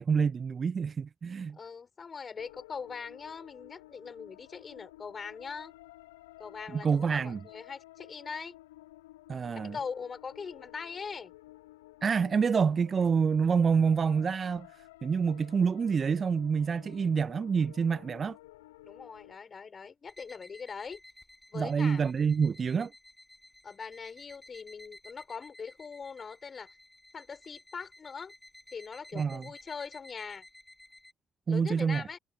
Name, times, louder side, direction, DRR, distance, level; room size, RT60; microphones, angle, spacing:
voice 1, 0.0-1.6 6.7-7.4 9.3-9.8 12.0-14.7 15.0-18.4 21.5-22.9 29.1-29.4 31.5-32.0, right 6 dB, 45° right, 0.5 m, -27 dB
voice 2, 1.5-5.7 6.4-8.5 9.5-11.3 18.8-21.0 21.5-22.1 23.6-26.7 27.1-28.3 28.7-30.4 31.5-32.2, left 5 dB, 40° left, 3.2 m, -41 dB
sound 1, 2.4-19.4, left 17 dB, 80° left, 1.0 m, -53 dB
sound 2, 20.1-31.1, left 1 dB, 10° left, 4.3 m, -55 dB
figure-of-eight pair, 40°, 0 cm